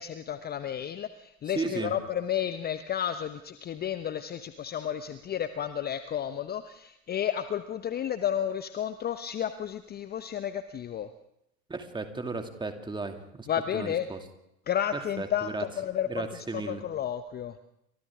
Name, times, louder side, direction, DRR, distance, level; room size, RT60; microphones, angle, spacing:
voice 1, 0.0-11.1 13.5-14.1 14.7-16.3 16.5-17.6, left 9 dB, 25° left, 11 dB, 0.9 m, -32 dB
voice 2, 1.5-1.9 11.7-13.5 13.7-14.2 15.2-15.6 16.1-16.8, right 3 dB, 10° right, 5 dB, 2.5 m, -35 dB
29.5 x 25.5 x 3.7 m, 0.81 s
figure-of-eight pair, 80°, 41 cm